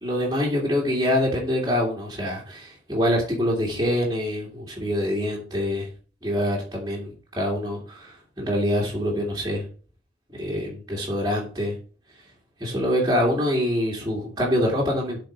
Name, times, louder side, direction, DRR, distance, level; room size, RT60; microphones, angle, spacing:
voice 1, 0.0-5.9 6.2-9.6 10.3-11.8 12.6-15.2, equal, 20° right, -4 dB, 2.3 m, -25 dB
7.6 x 5.1 x 6.2 m, 0.38 s
head